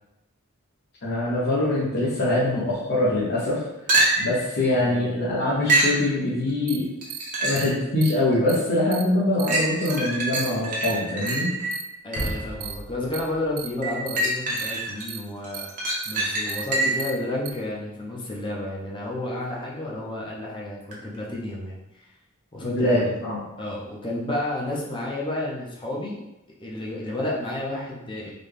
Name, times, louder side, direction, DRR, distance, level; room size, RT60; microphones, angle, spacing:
voice 1, 1.0-3.6 4.2-6.9 7.4-11.5 22.6-23.4, left 1 dB, 50° left, -9 dB, 0.8 m, -23 dB
sound 1, 3.9-4.4 5.7-6.0 7.0-7.8 8.3-8.4 9.5-12.5 13.8-15.0 15.4-17.1 20.9-21.0, right 2 dB, 40° right, 0.7 m, -25 dB
voice 2, 4.7-5.2 12.0-15.6 16.1-21.8 22.5-23.0 23.6-26.2 26.6-28.3, left 1 dB, 25° left, -3 dB, 0.7 m, -31 dB
sound 2, 6.7-6.8 7.1-7.2 7.6-7.7 8.0-8.1 8.5-8.6 8.9-9.0 9.4-9.5 9.9-10.0 10.3-10.5 10.8-10.9 11.3-11.4 11.7-11.8 12.2-12.3 12.6-12.7 13.1-13.2 13.6-13.7 14.1-14.2 14.6-14.7 15.1-15.2 15.5-15.7 16.0-16.1 16.5-16.6 17.0-17.1 17.5-17.6, right 11 dB, 80° right, 0.3 m, -35 dB
sound 3, 12.2-14.6, equal, 85° left, 0.9 m, -36 dB
4.0 x 2.3 x 3.4 m, 0.92 s
head